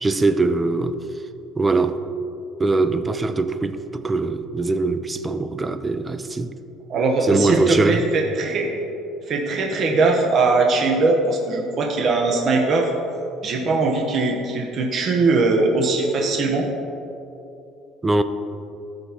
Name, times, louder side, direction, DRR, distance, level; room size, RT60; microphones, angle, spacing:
voice 1, 0.0-1.0 1.6-2.0 2.6-6.5 7.2-8.0 18.0-18.2, right 3 dB, 15° right, 0.4 m, -22 dB
voice 2, 6.9-8.7 9.3-12.9 13.4-16.7, right 3 dB, 40° right, 0.9 m, -20 dB
15.0 x 6.5 x 2.9 m
cardioid pair, 150°, 0 cm